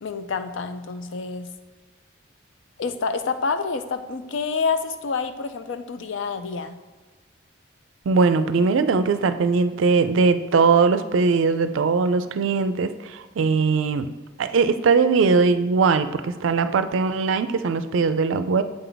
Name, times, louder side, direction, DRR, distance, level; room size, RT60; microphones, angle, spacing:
voice 1, 0.0-1.5 2.8-6.8, left 5 dB, 65° left, 9 dB, 0.4 m, -28 dB
voice 2, 8.1-14.1 14.4-18.6, right 4 dB, 70° right, 11 dB, 0.4 m, -20 dB
8.2 x 3.4 x 3.9 m, 1.3 s
head